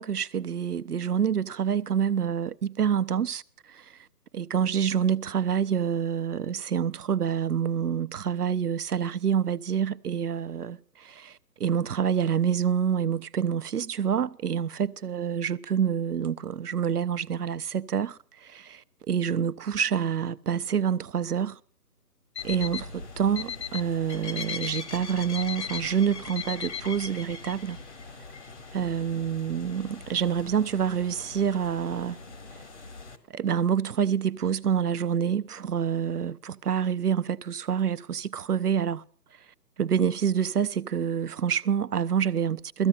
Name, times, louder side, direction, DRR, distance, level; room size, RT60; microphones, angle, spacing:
voice 1, 0.0-3.4 3.7-4.0 4.3-21.6 22.4-27.8 28.7-32.2 33.3-39.0 39.8-42.9, right 8 dB, 65° right, 0.8 m, -27 dB
Alarm, 22.4-22.8 23.4-23.8 24.4-24.8 25.4-25.8 26.4-26.8, left 8 dB, 80° left, 1.3 m, -34 dB
sound 1, 22.4-33.2, left 4 dB, 45° left, 1.9 m, -42 dB
17.5 x 14.5 x 5.7 m
figure-of-eight pair, 155°, 50 cm